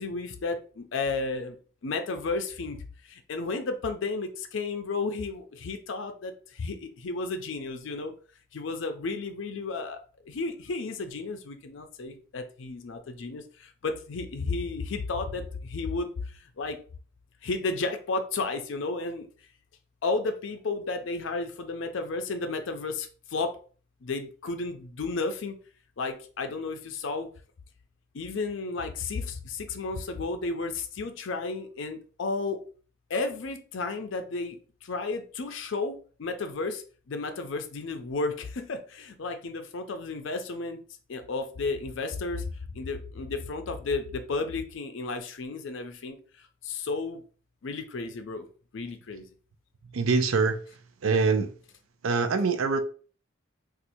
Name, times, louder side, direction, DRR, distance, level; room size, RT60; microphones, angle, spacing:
voice 1, 0.0-1.6 1.8-2.8 3.1-8.1 8.5-10.0 10.3-16.1 16.6-16.8 17.4-19.3 20.0-23.5 24.0-25.6 26.0-27.3 28.1-32.6 33.1-40.8 41.1-42.5 42.7-46.2 46.6-47.2 47.6-48.4 48.7-49.2, left 3 dB, 65° left, 0.5 m, -33 dB
voice 2, 49.9-50.6 51.0-51.6 52.0-52.8, right 4 dB, 85° right, 0.5 m, -24 dB
4.2 x 2.4 x 2.6 m
head